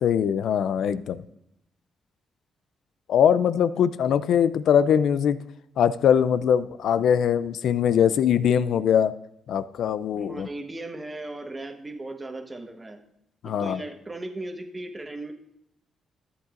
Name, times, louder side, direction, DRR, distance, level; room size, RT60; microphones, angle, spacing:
voice 1, 0.0-1.2 3.1-5.4 5.8-9.1 9.5-10.5 13.4-13.8, left 8 dB, 80° left, 15 dB, 0.4 m, -22 dB
voice 2, 10.2-13.0 13.4-15.3, right 2 dB, 25° right, 4 dB, 1.3 m, -37 dB
13.5 x 8.1 x 2.5 m, 0.77 s
cardioid pair, 80°, 0 cm